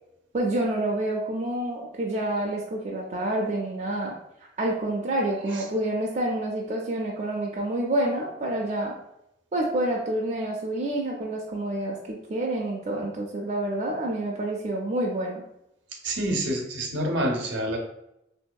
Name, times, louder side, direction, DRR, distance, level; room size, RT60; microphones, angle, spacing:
voice 1, 0.3-4.2 4.6-9.0 9.5-15.4, right 1 dB, 35° right, -2 dB, 0.3 m, -28 dB
voice 2, 16.0-17.8, right 1 dB, 70° right, 2 dB, 0.6 m, -27 dB
3.8 x 2.6 x 2.2 m, 0.83 s
head